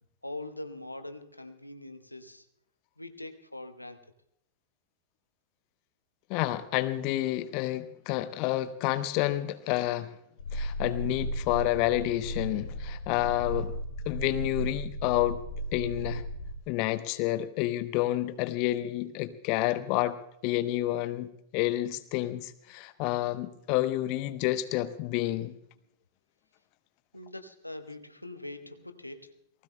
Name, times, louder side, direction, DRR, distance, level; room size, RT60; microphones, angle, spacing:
voice 1, 0.2-2.5 3.0-4.0 27.1-29.3, left 2 dB, 85° left, 8 dB, 1.0 m, -42 dB
voice 2, 6.3-10.1 10.5-13.8 14.1-15.4 15.7-16.2 16.7-20.2 20.4-25.6, left 15 dB, 45° left, 13 dB, 0.9 m, -29 dB
sound 1, 10.4-16.5, equal, 70° left, 2.3 m, -35 dB
29.0 x 19.5 x 2.2 m, 0.75 s
figure-of-eight pair, 90°, 0 cm